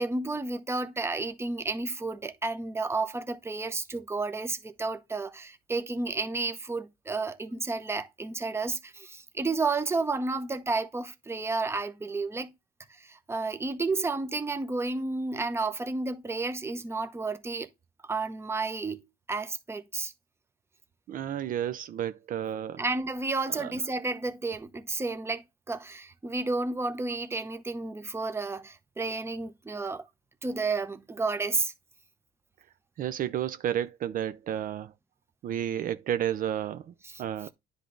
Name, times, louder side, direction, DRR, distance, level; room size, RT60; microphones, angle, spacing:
voice 1, 0.0-12.5 13.0-17.7 18.1-19.0 19.3-20.1 22.8-30.0 30.4-31.7 37.0-37.2, right 3 dB, 15° right, 0.9 m, -31 dB
voice 2, 21.1-22.8 23.5-23.8 33.0-34.9 35.4-36.9 37.2-37.5, right 10 dB, 55° right, 0.5 m, -31 dB
9.9 x 3.3 x 3.9 m
cardioid pair, 110°, 17 cm